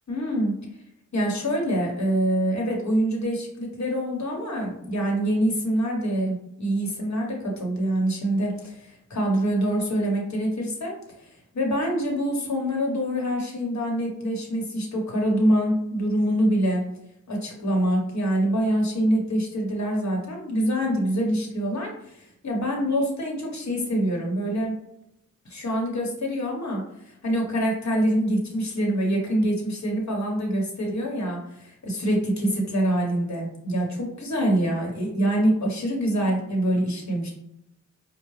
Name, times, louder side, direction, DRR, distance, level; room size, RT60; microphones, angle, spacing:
voice 1, 0.1-0.5 1.1-16.8 17.3-24.8 25.4-37.3, equal, 60° left, -1 dB, 1.1 m, -25 dB
4.7 x 2.2 x 3.1 m, 0.78 s
wide cardioid pair, 90°, 31 cm